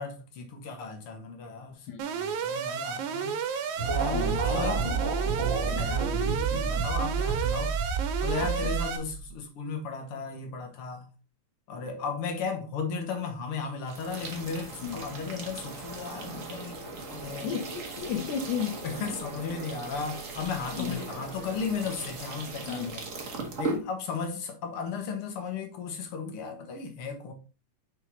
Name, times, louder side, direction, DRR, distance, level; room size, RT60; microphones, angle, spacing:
voice 1, 0.0-1.9 2.1-3.4 3.8-5.0 5.6-7.8 8.2-11.1 11.7-17.6 18.8-23.1 23.6-27.3, left 5 dB, 55° left, 2.0 m, -35 dB
Alarm, 2.0-9.0, right 6 dB, 70° right, 2.3 m, -32 dB
sound 1, 3.8-9.2, right 5 dB, 30° right, 1.6 m, -29 dB
sound 2, 13.8-23.8, right 3 dB, 50° right, 0.9 m, -38 dB
voice 2, 17.4-18.7 20.7-21.0 22.7-22.9, left 7 dB, 75° left, 2.6 m, -33 dB
6.0 x 5.4 x 4.0 m
omnidirectional pair, 3.6 m